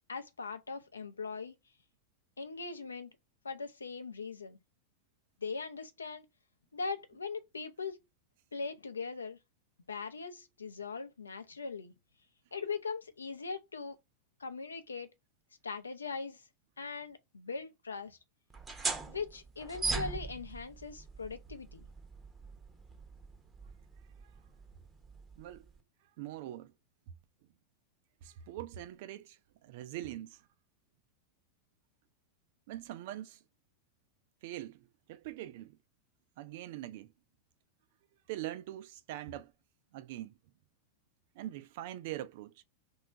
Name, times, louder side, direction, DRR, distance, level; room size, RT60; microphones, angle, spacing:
voice 1, 0.1-1.5 2.4-3.1 3.4-4.6 5.4-6.2 6.7-8.0 8.5-9.4 9.9-11.9 12.5-14.0 14.4-15.1 15.6-16.4 16.8-18.2 19.1-21.9, left 4 dB, 75° left, 0.5 m, -40 dB
sound 1, 18.5-25.8, right 4 dB, 15° right, 0.7 m, -41 dB
voice 2, 25.4-25.7 26.2-26.7 28.2-30.5 32.7-33.4 34.4-35.8 36.4-37.1 38.3-39.5 39.9-40.4 41.3-42.6, right 13 dB, 50° right, 0.4 m, -43 dB
2.9 x 2.3 x 3.3 m
figure-of-eight pair, 90°, 0 cm